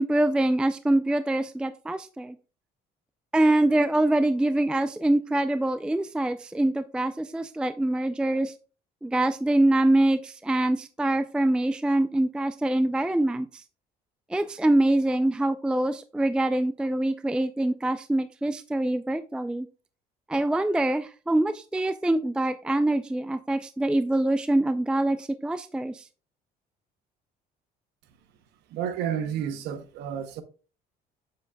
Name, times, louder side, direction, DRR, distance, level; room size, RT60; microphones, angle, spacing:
voice 1, 0.0-2.4 3.3-8.5 9.0-13.6 14.3-19.7 20.3-26.1, right 1 dB, 5° right, 0.3 m, -24 dB
voice 2, 28.7-30.4, right 8 dB, 85° right, 0.8 m, -31 dB
7.6 x 7.1 x 2.3 m
cardioid pair, 110°, 17 cm